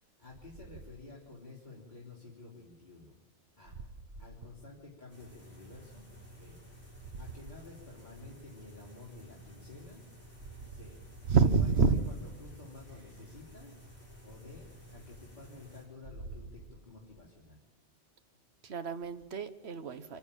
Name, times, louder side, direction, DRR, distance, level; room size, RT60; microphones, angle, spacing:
voice 1, 0.2-3.2 3.6-3.8 4.2-6.6 6.9-10.0 10.7-11.0 11.3-13.8 14.2-17.6 18.3-18.4, left 3 dB, 40° left, -6 dB, 3.4 m, -51 dB
sound 1, 5.1-15.8, equal, 10° right, 7.1 m, -53 dB
voice 2, 11.3-12.0 18.6-20.2, right 5 dB, 65° right, 10 dB, 1.3 m, -27 dB
25.5 x 11.5 x 8.9 m, 1.1 s
omnidirectional pair, 1.2 m